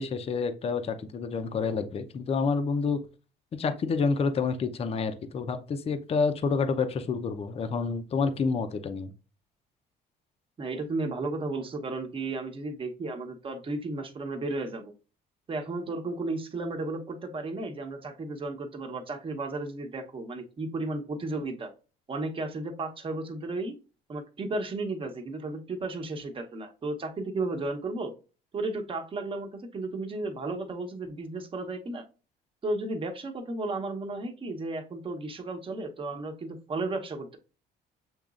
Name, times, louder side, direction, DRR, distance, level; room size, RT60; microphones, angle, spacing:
voice 1, 0.0-3.0 3.6-9.1, left 4 dB, 35° left, 8 dB, 0.6 m, -28 dB
voice 2, 10.6-14.9 15.5-21.7 22.1-23.8 24.1-28.1 28.5-32.0 32.6-37.4, right 2 dB, 30° right, 4 dB, 1.0 m, -34 dB
7.2 x 3.0 x 2.4 m, 0.33 s
cardioid pair, 110°, 17 cm